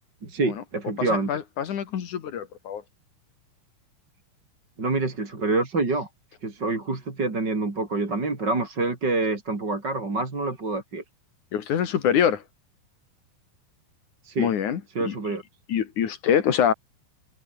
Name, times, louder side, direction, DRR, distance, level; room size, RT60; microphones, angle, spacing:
voice 1, 0.2-1.3 4.8-6.1 6.4-11.0 14.2-14.5 14.9-15.4, right 3 dB, 30° right, 4.5 m, -26 dB
voice 2, 1.0-2.8 11.5-12.4 14.4-15.1 15.7-16.7, left 8 dB, 60° left, 3.3 m, -25 dB
omnidirectional pair, 4.2 m